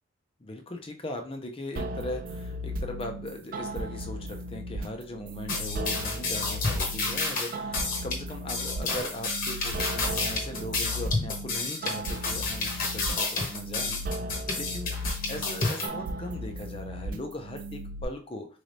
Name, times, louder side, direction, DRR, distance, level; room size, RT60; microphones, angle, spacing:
voice 1, 0.4-14.0 14.5-18.5, left 1 dB, 30° left, 4 dB, 0.6 m, -39 dB
sound 1, 1.8-18.0, right 1 dB, 45° right, 0.4 m, -36 dB
sound 2, 5.5-15.9, left 3 dB, 45° left, 1.0 m, -30 dB
4.1 x 3.2 x 2.6 m, 0.41 s
head